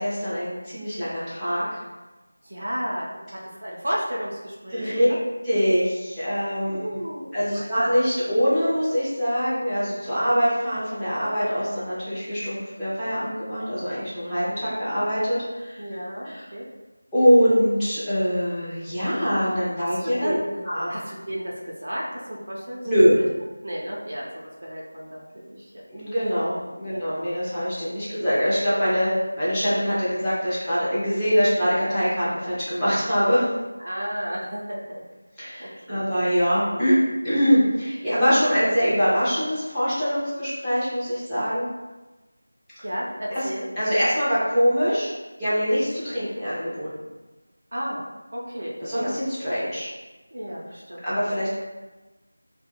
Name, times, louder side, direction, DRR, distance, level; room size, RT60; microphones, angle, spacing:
voice 1, 0.0-1.8 4.7-5.1 5.4-7.0 7.3-15.8 16.2-16.5 17.1-20.3 20.6-20.9 22.8-23.2 25.9-29.1 29.4-33.5 35.4-37.0 37.2-41.7 43.3-43.5 43.8-45.1 45.4-46.9 48.8-49.9 51.0-51.5, equal, 5° left, -18 dB, 0.6 m, -23 dB
voice 2, 2.4-5.2 6.6-7.7 15.8-16.7 19.8-20.6 20.9-22.8 23.2-23.3 23.6-25.8 26.9-27.1 33.8-35.0 35.6-36.1 42.8-43.7 47.7-48.0 48.3-49.2 50.3-51.3, equal, 45° right, -4 dB, 0.5 m, -33 dB
2.3 x 2.2 x 3.4 m, 1.1 s
figure-of-eight pair, 170°, 0 cm